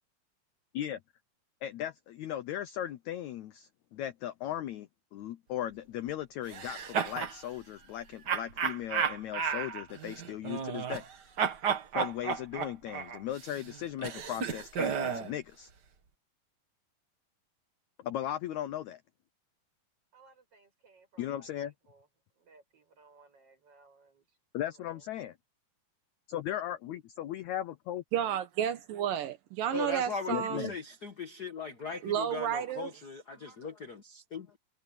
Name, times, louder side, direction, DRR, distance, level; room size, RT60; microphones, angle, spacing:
voice 1, 1.6-11.0 12.0-15.7 18.0-19.0 21.2-21.7 24.5-25.4 26.3-28.0 30.3-30.8, left 11 dB, 75° left, 1.7 m, -37 dB
sound 1, 6.5-7.4 8.3-11.1 11.4-15.3, right 7 dB, 55° right, 1.1 m, -33 dB
voice 2, 20.1-22.1 22.4-24.2 24.6-25.0, right 3 dB, 40° right, 8.0 m, -61 dB
voice 3, 28.1-30.7 32.0-32.9, right 10 dB, 75° right, 2.7 m, -31 dB
voice 4, 29.7-34.6, left 4 dB, 55° left, 1.1 m, -39 dB
omnidirectional pair, 4.1 m